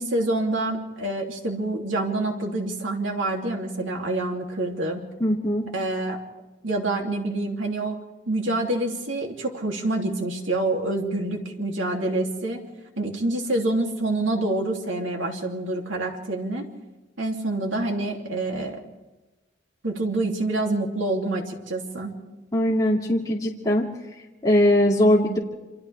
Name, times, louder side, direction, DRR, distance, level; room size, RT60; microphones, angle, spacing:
voice 1, 0.0-5.0 5.7-6.2 6.6-8.0 8.3-12.6 13.0-16.7 17.2-18.8 19.8-22.1, right 2 dB, 85° right, 1 dB, 3.0 m, -27 dB
voice 2, 5.2-5.6 22.5-23.9 24.4-25.4, left 1 dB, 20° left, -5 dB, 2.7 m, -20 dB
29.0 x 27.5 x 3.5 m, 1.1 s
head